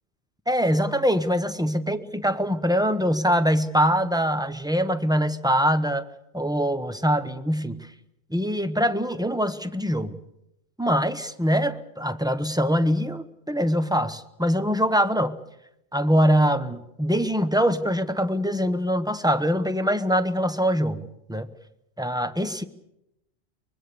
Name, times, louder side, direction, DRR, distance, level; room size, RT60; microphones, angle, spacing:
voice 1, 0.5-6.1 6.3-7.8 8.3-10.2 10.8-15.4 15.9-21.5 22.0-22.6, equal, 5° right, 10 dB, 0.9 m, -23 dB
24.0 x 21.5 x 7.0 m, 0.84 s
omnidirectional pair, 1.2 m